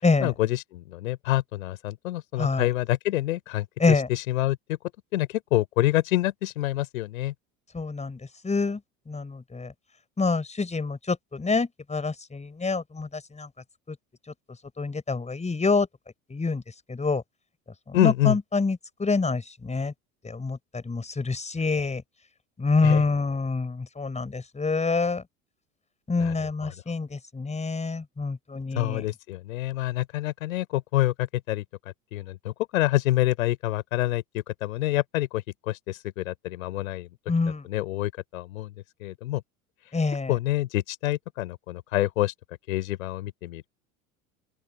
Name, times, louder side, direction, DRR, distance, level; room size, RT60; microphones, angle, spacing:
voice 1, 0.2-4.8 5.1-7.3 17.9-18.4 22.8-23.0 26.2-26.7 28.8-31.6 32.1-34.2 34.6-37.1 37.6-38.7 39.0-39.4 40.3-42.3 42.7-43.7, left 15 dB, 70° left, 3.8 m, -27 dB
voice 2, 7.7-8.8 9.1-9.7 10.2-13.5 13.9-14.0 14.8-15.9 16.3-16.6 16.9-17.2 17.9-19.9 20.2-22.0 22.6-25.2 26.1-29.1 37.3-37.6 39.9-40.3, left 4 dB, 15° left, 5.7 m, -26 dB
open air
figure-of-eight pair, 70°, 42 cm